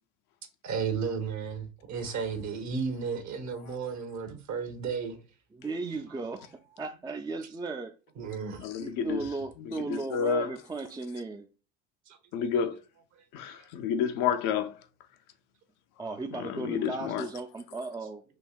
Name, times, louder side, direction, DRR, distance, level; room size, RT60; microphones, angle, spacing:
voice 1, 0.6-5.2 8.2-8.6, right 6 dB, 55° right, 1.2 m, -33 dB
voice 2, 5.5-7.9 8.8-11.5 16.0-18.2, right 3 dB, 10° right, 0.4 m, -36 dB
voice 3, 8.6-9.3 9.8-10.5 12.3-12.8 13.3-14.8 16.3-17.3, left 7 dB, 70° left, 0.7 m, -30 dB
4.6 x 2.8 x 2.3 m
supercardioid pair, 85°, 33 cm